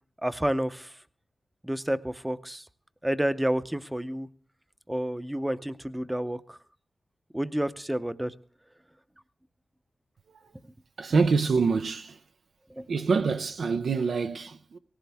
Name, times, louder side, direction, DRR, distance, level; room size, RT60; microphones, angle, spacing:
voice 1, 0.2-0.9 1.6-2.6 3.0-4.3 4.9-6.6 7.3-8.3 12.8-12.9, right 1 dB, 10° right, 0.6 m, -29 dB
voice 2, 11.0-12.2 12.9-14.8, right 4 dB, 80° right, 0.6 m, -26 dB
18.5 x 15.5 x 3.5 m
wide cardioid pair, 100°, 0 cm